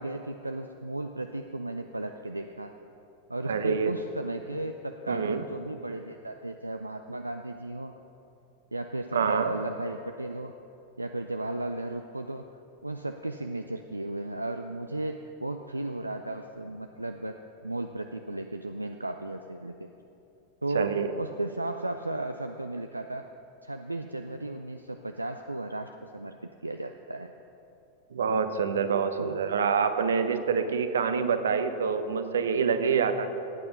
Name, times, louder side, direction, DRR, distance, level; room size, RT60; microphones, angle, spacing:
voice 1, 0.0-2.7 3.3-7.9 8.7-10.5 11.0-12.5 12.8-17.4 17.6-19.9 20.6-23.2 23.6-27.3 29.2-29.4, right 2 dB, 85° right, 7 dB, 0.4 m, -35 dB
voice 2, 3.4-3.9 5.1-5.4 9.1-9.5 20.7-21.1 28.1-33.4, right 6 dB, 65° right, 9 dB, 0.8 m, -26 dB
17.0 x 8.7 x 5.4 m, 2.8 s
figure-of-eight pair, 90°, 0 cm